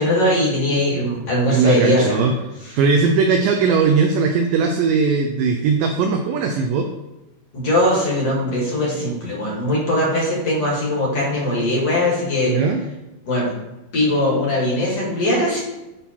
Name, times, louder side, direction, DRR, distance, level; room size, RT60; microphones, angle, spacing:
voice 1, 0.0-2.3 2.6-2.8 7.5-12.5 13.2-13.5 13.9-15.6, left 1 dB, 45° left, -4 dB, 2.5 m, -20 dB
voice 2, 1.5-2.3 2.8-6.9 12.5-12.8, right 5 dB, 85° right, 4 dB, 1.9 m, -19 dB
10.5 x 3.7 x 4.4 m, 1.0 s
omnidirectional pair, 4.5 m